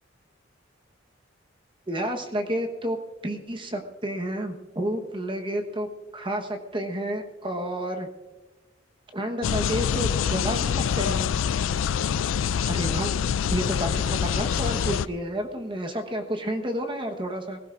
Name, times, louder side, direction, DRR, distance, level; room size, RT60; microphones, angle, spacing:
voice 1, 1.9-3.0 3.2-5.9 6.1-8.1 9.1-11.3 12.7-13.1 13.5-17.6, right 1 dB, 25° right, 4 dB, 1.2 m, -30 dB
sound 1, 9.4-15.1, left 7 dB, 80° left, 0.4 m, -25 dB
22.5 x 16.0 x 2.6 m, 1.2 s
head